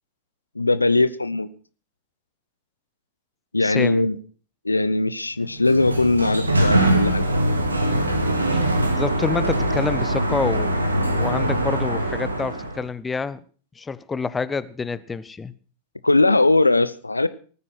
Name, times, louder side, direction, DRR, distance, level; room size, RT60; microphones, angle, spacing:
voice 1, 0.6-1.5 3.5-4.2 4.6-7.2 16.0-17.3, left 2 dB, 80° left, 16 dB, 0.7 m, -20 dB
voice 2, 3.6-4.1 8.5-13.4 13.8-15.5, left 4 dB, 15° left, 17 dB, 0.8 m, -28 dB
Sliding door, 5.5-12.8, right 1 dB, 80° right, 2.3 m, -22 dB
18.5 x 9.7 x 6.1 m, 0.41 s
figure-of-eight pair, 90°, 0 cm